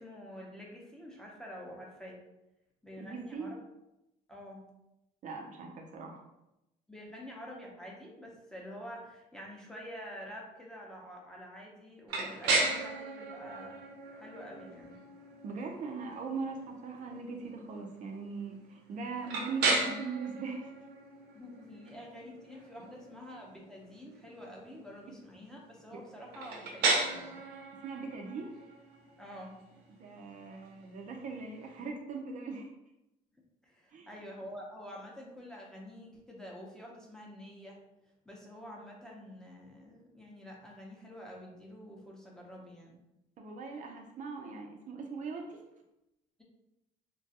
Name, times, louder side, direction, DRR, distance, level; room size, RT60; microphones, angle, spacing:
voice 1, 0.0-2.2 2.8-3.6 4.3-4.7 6.9-15.0 21.3-27.4 29.2-29.6 33.3-37.8 38.2-43.0, equal, 5° left, -2 dB, 0.6 m, -48 dB
voice 2, 3.0-3.5 5.2-6.2 15.4-20.7 25.9-26.0 27.7-28.5 29.9-32.7 33.9-34.1 43.4-45.6, right 4 dB, 50° right, 2 dB, 0.5 m, -40 dB
sound 1, 12.1-31.8, right 3 dB, 85° right, 0.7 m, -36 dB
2.9 x 2.3 x 2.7 m, 0.91 s
cardioid pair, 110°, 17 cm